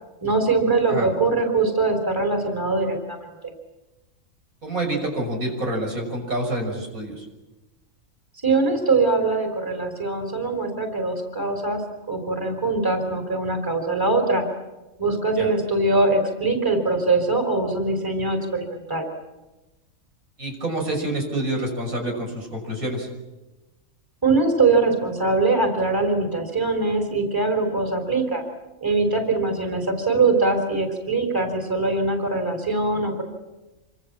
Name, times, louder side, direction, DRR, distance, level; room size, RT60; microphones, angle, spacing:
voice 1, 0.2-3.5 8.4-11.8 12.1-14.4 15.0-19.1 24.2-28.4 28.8-33.2, right 3 dB, 15° right, 4 dB, 3.8 m, -22 dB
voice 2, 4.6-7.3 15.4-15.5 20.4-23.1, right 1 dB, 80° right, 2 dB, 6.9 m, -27 dB
27.5 x 25.5 x 7.4 m, 1.1 s
omnidirectional pair, 1.4 m